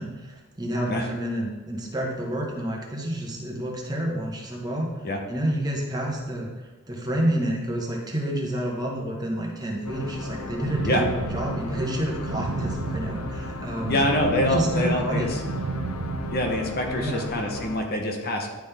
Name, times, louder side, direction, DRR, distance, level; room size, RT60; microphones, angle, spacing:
voice 1, 0.0-4.9 5.3-14.0 14.4-15.3 17.0-17.2, right 1 dB, 20° right, -2 dB, 1.1 m, -29 dB
sound 1, 9.8-17.8, left 2 dB, 90° left, 0.7 m, -35 dB
sound 2, 10.6-16.9, right 4 dB, 90° right, 0.5 m, -33 dB
voice 2, 13.9-15.4 16.3-18.5, left 1 dB, 45° left, 2 dB, 0.9 m, -25 dB
10.5 x 3.9 x 3.4 m, 1.2 s
head